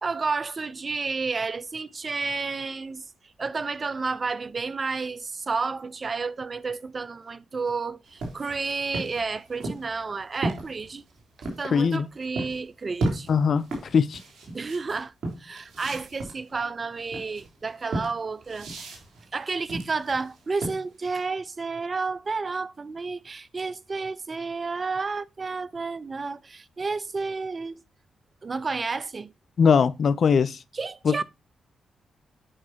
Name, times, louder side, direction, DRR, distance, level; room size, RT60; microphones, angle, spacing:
voice 1, 0.0-3.0 3.4-11.0 11.6-13.3 14.5-15.1 15.4-18.7 19.3-27.8 28.4-29.3 30.7-31.2, right 4 dB, 45° right, 0.7 m, -31 dB
sound 1, 8.1-11.7 12.4-12.6 13.0-21.1, right 2 dB, 70° right, 3.5 m, -34 dB
voice 2, 11.6-12.1 13.3-13.6 13.9-14.2 29.6-30.6 31.0-31.2, left 6 dB, 60° left, 0.5 m, -20 dB
8.7 x 5.9 x 2.8 m
supercardioid pair, 50°, 0 cm